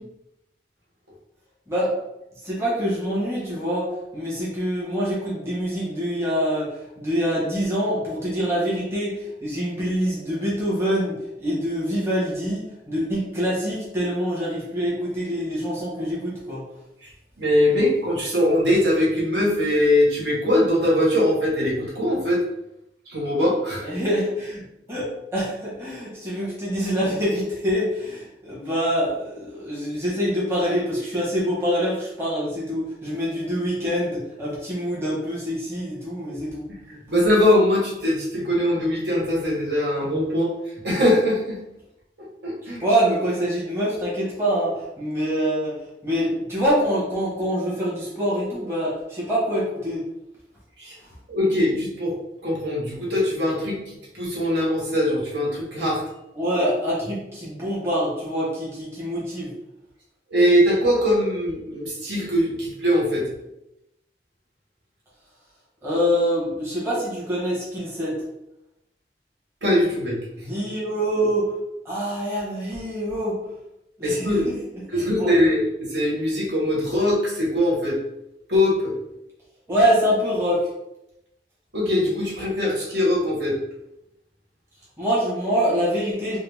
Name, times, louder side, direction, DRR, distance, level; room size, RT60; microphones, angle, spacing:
voice 1, 1.7-2.0 2.4-16.6 23.8-36.7 42.6-50.1 51.0-51.1 56.3-59.5 65.8-68.2 70.4-71.5 71.8-73.4 74.0-74.4 74.7-75.3 79.7-80.7 85.0-86.4, equal, 15° right, -7 dB, 1.1 m, -25 dB
voice 2, 17.4-22.4 23.1-23.9 36.9-40.5 40.8-41.6 42.4-42.8 50.8-50.9 51.3-52.1 52.4-53.8 54.1-56.0 60.3-63.2 69.6-70.2 74.0-74.5 74.9-78.0 78.5-78.9 81.7-83.6, left 1 dB, 75° right, -5 dB, 1.3 m, -21 dB
3.8 x 2.0 x 3.4 m, 0.87 s
head